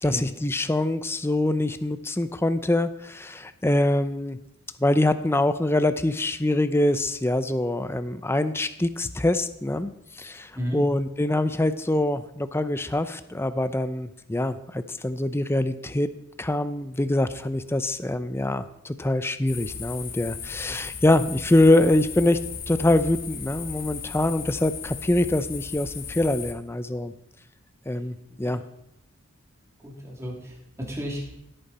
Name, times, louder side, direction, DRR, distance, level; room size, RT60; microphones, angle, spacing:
voice 1, 0.0-4.4 4.8-16.1 16.4-22.4 22.7-27.1 27.9-28.6, left 1 dB, 10° left, 12 dB, 0.6 m, -24 dB
sound 1, 19.5-26.5, left 6 dB, 45° left, 1.2 m, -36 dB
voice 2, 29.8-31.3, equal, 15° right, -2 dB, 2.9 m, -33 dB
16.0 x 9.0 x 4.2 m, 0.82 s
head